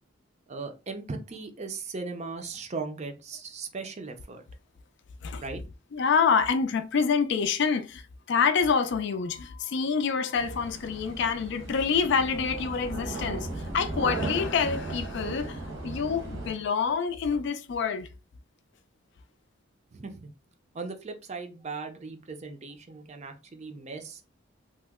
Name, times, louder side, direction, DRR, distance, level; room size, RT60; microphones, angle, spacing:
voice 1, 0.5-4.4 5.4-5.6 19.9-20.3 20.7-24.2, right 4 dB, 35° right, 0.5 m, -38 dB
voice 2, 5.9-8.0 8.3-18.1, left 6 dB, 60° left, 0.3 m, -27 dB
sound 1, 10.4-16.5, right 2 dB, 80° right, 1.1 m, -36 dB
2.9 x 2.0 x 3.5 m
head